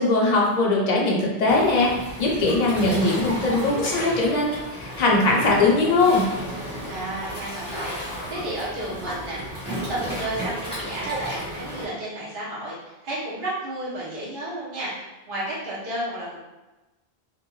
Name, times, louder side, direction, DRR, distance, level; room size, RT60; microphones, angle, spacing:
voice 1, 0.0-1.9 2.2-6.2, left 2 dB, 50° left, -2 dB, 0.7 m, -20 dB
Waves surf, 1.5-11.8, equal, 5° left, 0.9 m, -33 dB
voice 2, 6.9-9.4 9.7-14.9 15.3-16.5, right 1 dB, 60° right, -7 dB, 0.9 m, -32 dB
2.5 x 2.2 x 3.0 m, 1.1 s
omnidirectional pair, 1.0 m